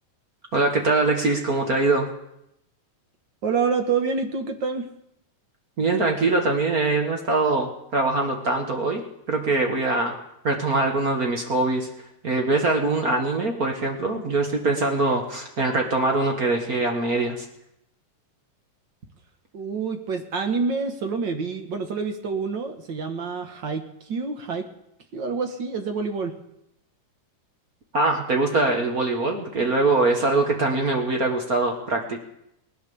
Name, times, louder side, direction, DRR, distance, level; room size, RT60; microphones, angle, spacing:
voice 1, 0.5-2.1 5.8-9.0 9.3-10.2 10.4-11.9 12.2-17.4 27.9-32.2, right 2 dB, 45° right, 2 dB, 1.3 m, -23 dB
voice 2, 3.4-4.9 19.5-24.7 25.1-26.4, right 5 dB, 60° right, 6 dB, 1.2 m, -27 dB
20.0 x 10.0 x 7.0 m, 0.80 s
omnidirectional pair, 3.7 m